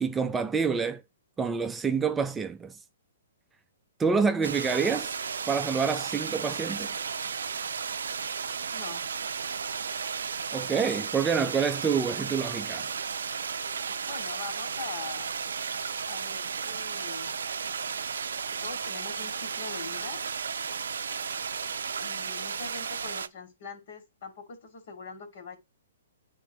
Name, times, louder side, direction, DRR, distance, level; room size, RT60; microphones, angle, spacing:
voice 1, 0.0-1.0 1.4-2.8 4.0-5.1 5.5-6.9 10.5-12.9, right 5 dB, 10° right, 0.4 m, -27 dB
sound 1, 4.4-23.3, right 6 dB, 80° right, 0.5 m, -34 dB
voice 2, 8.7-9.1 14.0-15.3 16.0-17.3 18.6-20.2 22.0-25.6, left 5 dB, 60° left, 2.5 m, -42 dB
9.4 x 3.8 x 3.0 m
hypercardioid pair, 135°, 0 cm